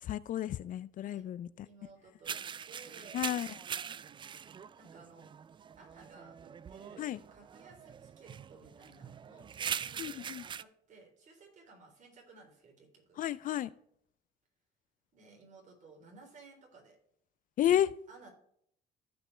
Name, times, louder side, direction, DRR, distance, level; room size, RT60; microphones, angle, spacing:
voice 1, 0.0-1.7 3.1-3.6 7.0-7.2 10.0-10.4 13.2-13.7 17.6-17.9, left 11 dB, 50° left, 0.4 m, -32 dB
voice 2, 1.6-2.4 2.7-3.2 4.8-5.3 5.8-13.2 15.1-17.0 18.1-18.3, right 4 dB, 45° right, 3.7 m, -57 dB
sound 1, 2.2-10.6, right 7 dB, 30° right, 0.3 m, -42 dB
15.0 x 5.3 x 3.3 m
cardioid pair, 110°, 17 cm